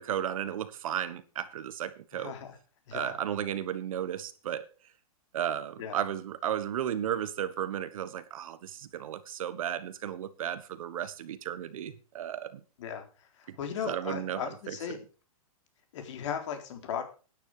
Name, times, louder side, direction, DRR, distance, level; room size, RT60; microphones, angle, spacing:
voice 1, 0.0-2.3 2.9-4.7 5.3-12.6 13.5-13.6 13.8-15.0, right 10 dB, 65° right, 1.4 m, -34 dB
voice 2, 2.1-2.6 2.9-3.2 5.8-6.0 12.8-13.0 13.4-15.0 15.9-17.0, left 8 dB, 55° left, 3.8 m, -37 dB
12.5 x 10.0 x 4.9 m
hypercardioid pair, 155°, 19 cm